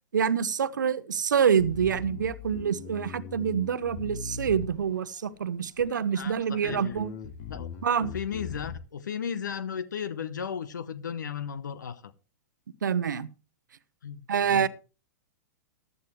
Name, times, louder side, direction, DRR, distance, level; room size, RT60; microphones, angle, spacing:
voice 1, 0.1-7.1 7.8-8.1 12.8-13.3 14.3-14.7, right 7 dB, 80° right, 0.8 m, -26 dB
Bass guitar, 1.6-5.2 5.8-6.3 6.7-8.8, left 5 dB, 50° left, 1.5 m, -40 dB
voice 2, 6.1-7.0 7.5-7.7 8.0-12.1 14.0-14.7, left 7 dB, 75° left, 0.9 m, -35 dB
15.0 x 11.0 x 3.1 m
hypercardioid pair, 110°, 10 cm